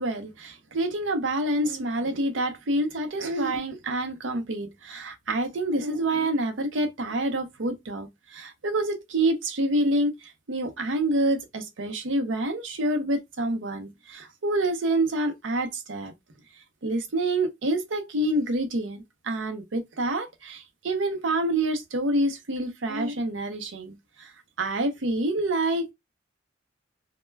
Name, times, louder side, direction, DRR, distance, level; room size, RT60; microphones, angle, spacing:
voice 1, 0.0-8.1 8.3-10.1 10.5-16.1 16.8-24.0 24.6-25.9, right 1 dB, 80° right, 0.6 m, -27 dB
2.2 x 2.1 x 3.2 m
head